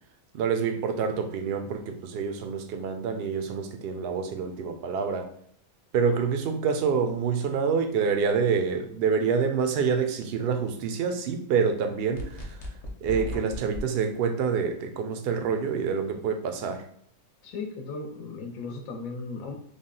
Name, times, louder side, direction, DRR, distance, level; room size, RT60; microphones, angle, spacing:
voice 1, 0.3-5.3 5.9-12.6 13.0-16.9, right 6 dB, 70° right, 6 dB, 0.5 m, -27 dB
sound 1, 12.1-13.8, left 1 dB, 45° left, 0.5 m, -36 dB
voice 2, 17.4-19.6, left 4 dB, 75° left, 3 dB, 1.0 m, -36 dB
3.5 x 2.2 x 3.7 m, 0.63 s
omnidirectional pair, 1.5 m